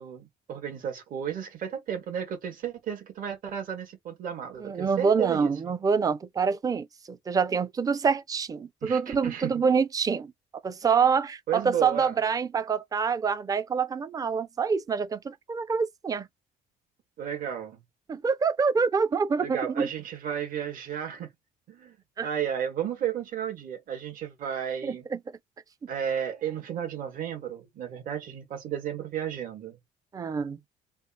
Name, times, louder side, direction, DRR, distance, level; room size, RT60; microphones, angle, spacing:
voice 1, 0.0-5.5 8.8-9.6 11.5-12.2 17.2-17.8 19.4-21.3 21.7-25.0 25.9-29.8, right 9 dB, 55° right, 1.6 m, -33 dB
voice 2, 4.6-10.3 10.6-16.3 18.1-19.9 22.2-22.3 24.8-25.2 30.1-30.6, right 5 dB, 20° right, 0.5 m, -26 dB
3.3 x 2.4 x 4.2 m
cardioid pair, 110°, 17 cm